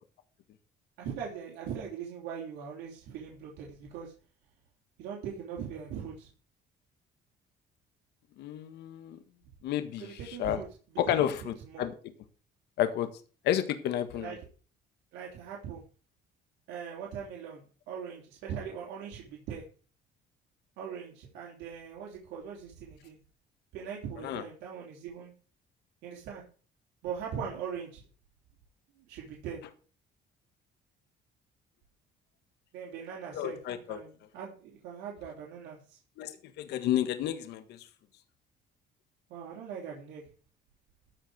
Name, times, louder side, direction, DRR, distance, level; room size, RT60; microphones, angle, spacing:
voice 1, 1.0-4.1 5.0-6.3 10.0-11.9 14.1-14.4 15.1-15.8 16.7-19.6 20.8-23.2 23.7-25.3 26.0-26.4 27.0-28.0 29.1-29.6 32.7-36.0 39.3-40.2, right 7 dB, 90° right, -2 dB, 3.3 m, -41 dB
voice 2, 8.4-9.2 9.6-10.6 11.0-11.9 12.8-13.1 13.4-14.3 24.2-24.4 33.3-34.0 36.2-37.8, left 11 dB, 80° left, 9 dB, 1.6 m, -31 dB
14.0 x 5.0 x 7.8 m, 0.39 s
cardioid pair, 110°, 17 cm